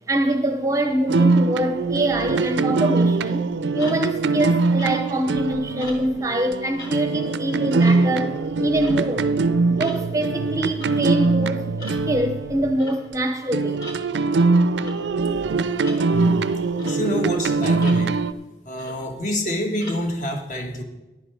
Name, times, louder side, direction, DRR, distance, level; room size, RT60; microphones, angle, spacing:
voice 1, 0.1-3.4 3.7-9.3 9.7-13.9, right 1 dB, 20° right, 0.6 m, -24 dB
sound 1, 1.1-13.1 13.5-18.3, right 3 dB, 75° right, 0.4 m, -22 dB
sound 2, 3.8-4.2 4.8-5.2 5.8-6.1 6.8-7.0 7.8-8.1 8.8-9.0 9.8-10.0 10.8-11.0 11.8-12.0 12.8-13.0 13.8-14.0 14.8-15.0 15.8-16.0 16.8-17.0 17.8-18.0 18.8-19.1 19.8-20.0, left 1 dB, 20° left, 1.2 m, -39 dB
voice 2, 16.1-16.5 16.8-18.2 18.6-20.8, equal, 45° left, 1.4 m, -27 dB
14.5 x 10.5 x 3.4 m
head